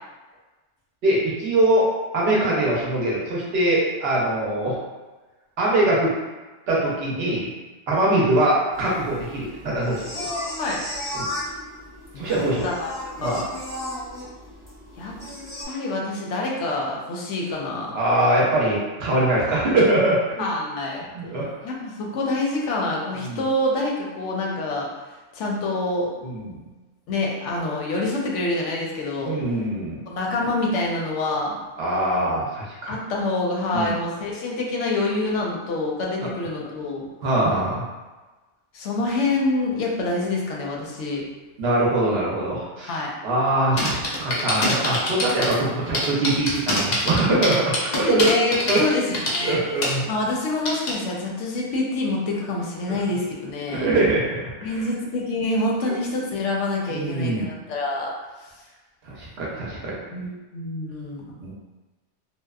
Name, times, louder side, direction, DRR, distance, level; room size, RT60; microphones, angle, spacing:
voice 1, 1.0-1.9 2.1-4.8 5.6-6.1 6.7-7.5 7.9-10.1 11.1-11.3 12.2-12.7 13.2-13.4 17.9-20.5 21.1-21.5 23.2-23.4 26.2-26.6 29.2-30.0 31.8-33.0 33.7-33.9 37.2-37.8 41.6-48.3 48.7-48.8 49.4-50.1 53.7-54.4 54.7-54.8 55.9-56.0 56.9-57.5 59.0-59.9 61.4-61.5, right 1 dB, 65° right, -4 dB, 0.8 m, -22 dB
sound 1, 8.7-15.6, left 1 dB, 5° left, 0.8 m, -35 dB
voice 2, 10.1-10.8 12.1-13.5 15.0-15.1 15.7-18.0 20.4-21.0 21.6-24.9 25.3-26.1 27.1-29.4 30.1-31.6 32.9-37.0 38.7-41.2 42.9-43.1 47.9-49.6 50.1-53.9 54.6-58.1 60.1-61.2, left 2 dB, 85° left, -2 dB, 0.9 m, -26 dB
sound 2, 43.8-45.5 45.9-49.4 49.8-49.9 50.7-50.9, left 1 dB, 55° left, 0.5 m, -24 dB
2.8 x 2.0 x 2.2 m, 1.2 s
omnidirectional pair, 1.2 m